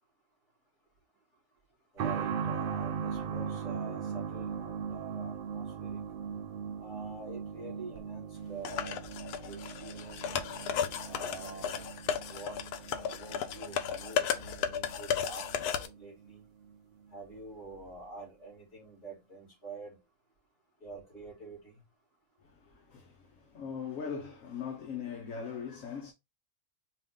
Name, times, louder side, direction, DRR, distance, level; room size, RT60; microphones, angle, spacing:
voice 1, 1.9-6.0 6.8-9.0 9.3-10.4 11.0-11.8 12.3-12.6 12.9-16.4 17.1-20.0 20.8-21.8, right 3 dB, 50° left, 2.8 m, -47 dB
sound 1, 2.0-16.4 16.7-16.8 17.7-17.8, right 7 dB, 85° right, 0.5 m, -39 dB
sound 2, 8.6-15.9, left 8 dB, 85° left, 1.1 m, -34 dB
voice 2, 22.4-26.1, left 6 dB, 65° left, 1.2 m, -40 dB
4.7 x 2.5 x 3.7 m
omnidirectional pair, 1.6 m